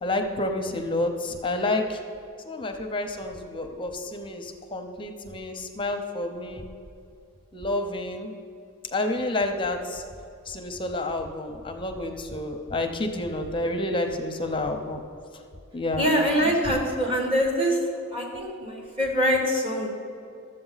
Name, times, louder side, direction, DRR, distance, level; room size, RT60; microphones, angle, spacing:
voice 1, 0.0-2.0 2.4-6.7 7.5-8.3 8.9-10.0 10.5-15.0 15.7-16.8, left 2 dB, 25° left, 5 dB, 0.6 m, -29 dB
voice 2, 16.0-17.8 18.1-19.9, equal, 25° right, -1 dB, 1.7 m, -24 dB
12.5 x 7.7 x 4.0 m, 2.5 s
head